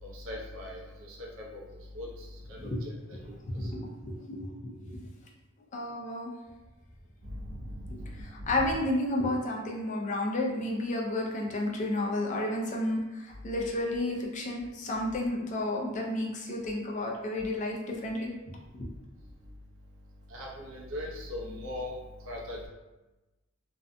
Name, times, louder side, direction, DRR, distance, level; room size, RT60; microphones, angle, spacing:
voice 1, 0.0-1.6 1.9-2.9 3.2-3.3 3.6-3.7 7.2-8.8 20.3-21.9 22.2-22.7, left 1 dB, 70° right, -3 dB, 0.6 m, -40 dB
voice 2, 3.4-5.1 5.7-6.3 8.2-18.6, left 1 dB, 35° left, -1 dB, 0.4 m, -32 dB
2.6 x 2.1 x 2.5 m, 1.1 s
head